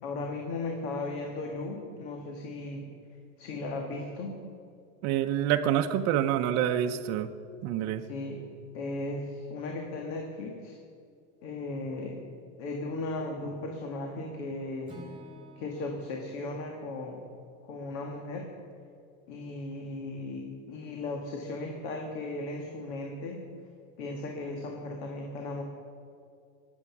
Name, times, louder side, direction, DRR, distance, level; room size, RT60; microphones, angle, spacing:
voice 1, 0.0-2.9 3.4-4.4 8.1-8.4 8.7-10.8 11.4-12.2 12.6-15.0 15.6-17.2 17.6-18.5 19.3-23.4 24.0-25.6, left 2 dB, 65° left, 2 dB, 1.9 m, -36 dB
voice 2, 5.0-7.3 7.6-8.0, right 10 dB, 45° right, 5 dB, 0.7 m, -27 dB
Acoustic guitar / Strum, 14.9-18.9, right 1 dB, 15° right, 1.6 m, -53 dB
21.0 x 8.2 x 6.0 m, 2.4 s
supercardioid pair, 145°, 37 cm